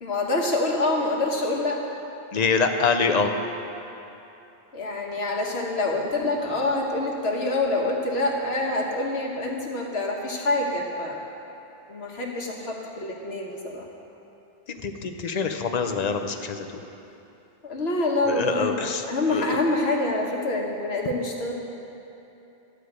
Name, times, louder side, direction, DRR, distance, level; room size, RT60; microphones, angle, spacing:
voice 1, 0.0-1.8 4.7-11.3 11.9-13.9 17.6-21.5, left 2 dB, 90° left, 0 dB, 1.5 m, -26 dB
voice 2, 2.3-3.3 14.8-16.7 18.3-19.0 19.3-19.5, left 5 dB, 50° left, 6 dB, 0.7 m, -25 dB
11.0 x 4.9 x 7.9 m, 2.9 s
omnidirectional pair, 1.0 m